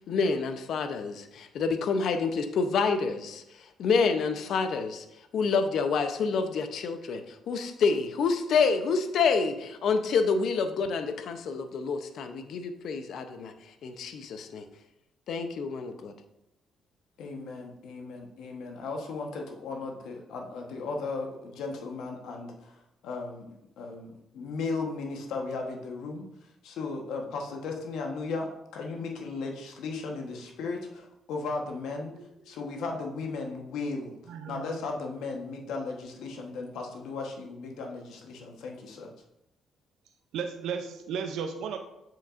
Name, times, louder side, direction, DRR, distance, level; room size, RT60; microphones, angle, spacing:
voice 1, 0.1-3.4 3.8-5.0 5.3-13.5 13.8-14.6 15.3-16.1, left 5 dB, 70° left, 8 dB, 0.6 m, -28 dB
voice 2, 17.2-26.2 26.6-32.1 32.4-39.1, left 3 dB, 85° left, 2 dB, 1.1 m, -36 dB
voice 3, 34.3-34.8 40.3-41.8, right 6 dB, 80° right, 5 dB, 0.5 m, -34 dB
7.3 x 5.9 x 2.5 m, 0.85 s
cardioid pair, 90°, 0 cm